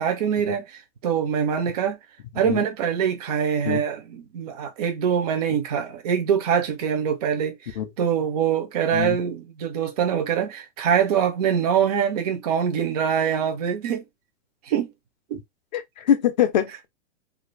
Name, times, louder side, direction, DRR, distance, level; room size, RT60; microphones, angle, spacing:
voice 1, 0.0-2.0 2.3-14.0 14.6-14.9 15.3-15.4, right 8 dB, 35° right, 0.5 m, -24 dB
voice 2, 15.7-16.9, left 10 dB, 40° left, 0.5 m, -23 dB
2.6 x 2.4 x 3.1 m
hypercardioid pair, 165°, 37 cm